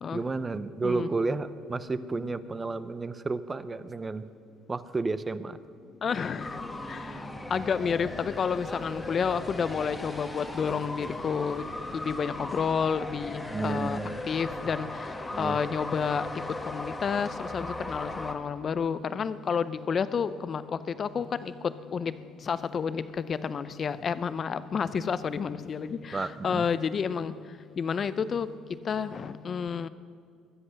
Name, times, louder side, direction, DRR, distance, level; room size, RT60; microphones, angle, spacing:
voice 1, 0.1-4.3 4.7-5.6 13.5-14.2 15.3-15.6 26.1-26.7, right 3 dB, 20° right, 14 dB, 0.6 m, -31 dB
voice 2, 6.0-6.6 6.9-7.1 7.5-11.7 11.9-16.3 16.6-22.1 22.4-27.3 27.8-28.5 28.8-29.9, left 6 dB, 35° left, 15 dB, 0.5 m, -30 dB
sound 1, 6.4-18.4, left 2 dB, 10° left, 1.2 m, -38 dB
sound 2, 7.5-12.8, right 3 dB, 35° right, 3.7 m, -59 dB
21.5 x 7.8 x 6.4 m, 2.2 s
cardioid pair, 130°, 0 cm